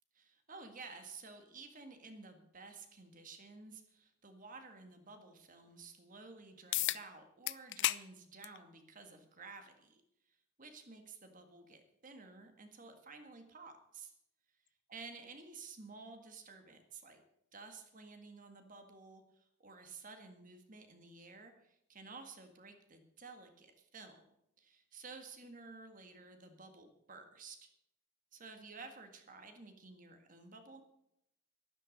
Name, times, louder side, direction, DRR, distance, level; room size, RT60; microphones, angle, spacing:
voice 1, 0.2-10.0 10.6-14.1 14.9-17.2 17.5-24.2 24.6-27.7 28.3-30.8, right 4 dB, 40° right, 7 dB, 1.8 m, -53 dB
sound 1, 6.7-7.0 7.5-8.0 8.4-8.6 9.7-9.8 14.7-14.8, left 16 dB, 55° left, 0.4 m, -33 dB
12.0 x 11.5 x 6.5 m, 0.78 s
head